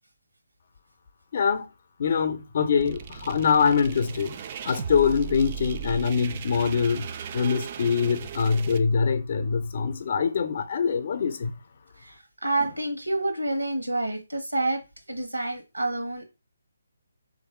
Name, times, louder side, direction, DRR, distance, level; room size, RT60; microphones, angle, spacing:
voice 1, 1.3-1.7 2.0-4.4 4.7-7.1 7.3-11.5, left 6 dB, 45° left, 0.5 m, -24 dB
sound 1, 2.8-8.8, right 8 dB, 30° right, 0.3 m, -37 dB
voice 2, 12.4-14.8 15.1-16.2, right 2 dB, 85° right, 1.1 m, -28 dB
3.4 x 2.6 x 4.3 m
figure-of-eight pair, 145°, 0 cm